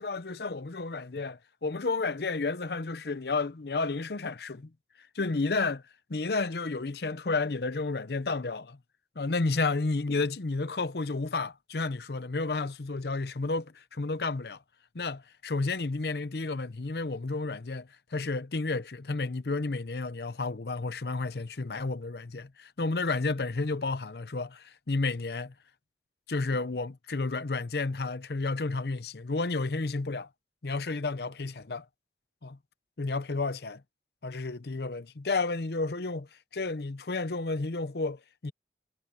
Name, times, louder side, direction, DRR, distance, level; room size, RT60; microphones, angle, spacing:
voice 1, 0.0-4.7 5.1-5.8 6.1-8.8 9.2-14.6 14.9-25.5 26.3-30.3 30.6-31.8 32.4-32.6 33.0-33.8 34.2-38.5, left 3 dB, 65° left, 0.7 m, -31 dB
head